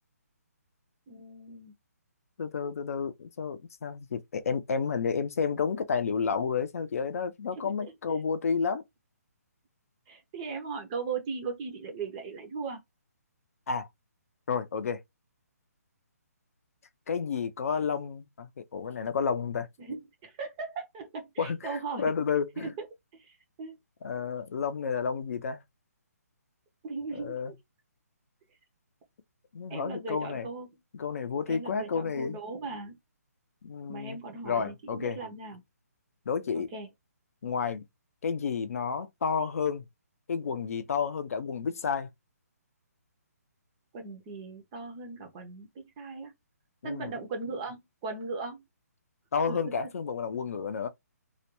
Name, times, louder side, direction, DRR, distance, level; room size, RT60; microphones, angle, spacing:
voice 1, 1.1-1.7 7.6-7.9 10.1-12.8 19.8-22.1 22.6-22.9 23.1-23.8 26.8-27.6 29.7-30.7 31.5-33.0 33.9-35.6 36.5-36.9 43.9-46.3 46.8-48.6 49.5-49.7, right 4 dB, 20° right, 0.5 m, -38 dB
voice 2, 2.4-8.8 13.7-13.9 14.5-15.0 17.1-19.7 21.4-22.7 24.0-25.6 27.1-27.5 29.5-30.5 30.9-32.4 33.6-35.2 36.3-36.7 37.4-37.8 38.2-39.8 40.3-42.1 46.8-47.2 49.3-50.9, left 6 dB, 60° left, 0.5 m, -31 dB
2.3 x 2.2 x 2.8 m
hypercardioid pair, 160°, 9 cm